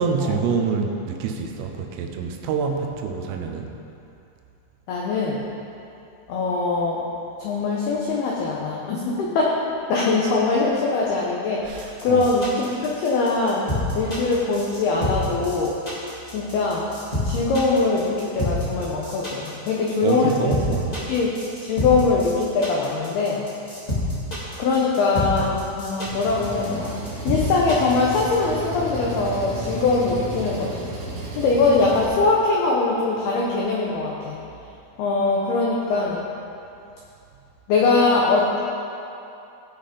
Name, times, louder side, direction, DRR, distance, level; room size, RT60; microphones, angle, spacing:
voice 1, 0.0-3.7 11.6-12.3 20.0-21.1, right 5 dB, 80° right, 3 dB, 3.3 m, -26 dB
voice 2, 4.9-5.4 6.3-7.0 7.4-9.5 9.9-13.7 14.0-15.7 16.3-16.9 17.2-20.5 21.1-23.4 24.6-27.0 27.2-30.9 31.4-34.4 35.0-36.2 37.7-38.6, left 3 dB, 85° left, -3 dB, 2.2 m, -22 dB
sound 1, 11.6-28.3, left 1 dB, 35° left, 0.6 m, -28 dB
Engine, 26.0-32.1, right 1 dB, 60° right, 2.2 m, -33 dB
17.5 x 5.8 x 5.2 m, 2.7 s
omnidirectional pair, 5.9 m